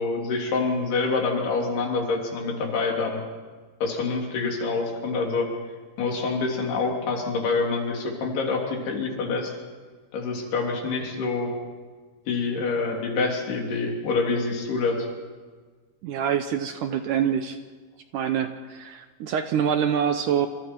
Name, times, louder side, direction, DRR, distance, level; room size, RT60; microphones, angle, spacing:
voice 1, 0.0-3.2 3.8-5.5 6.0-9.5 10.1-11.5 12.3-15.1, left 4 dB, 85° left, 0 dB, 5.2 m, -26 dB
voice 2, 16.0-17.6 18.1-20.5, right 8 dB, 75° right, 8 dB, 2.0 m, -25 dB
27.5 x 27.0 x 4.6 m, 1.4 s
omnidirectional pair, 4.5 m